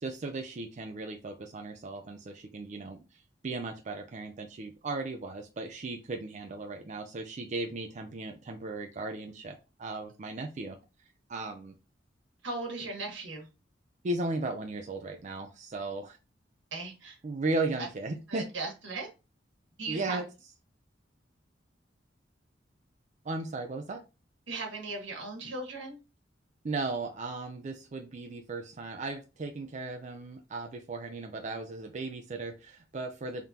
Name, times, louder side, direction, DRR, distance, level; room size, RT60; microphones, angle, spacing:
voice 1, 0.0-10.8 11.3-11.7 14.0-16.2 17.2-18.5 19.9-20.3 23.2-24.0 26.6-33.4, right 3 dB, 40° right, 4 dB, 0.5 m, -36 dB
voice 2, 12.4-13.5 16.7-17.2 17.8-17.9 18.3-19.1 19.8-20.2 24.5-26.0, right 3 dB, 85° right, 1 dB, 1.5 m, -37 dB
3.6 x 3.6 x 2.8 m, 0.29 s
head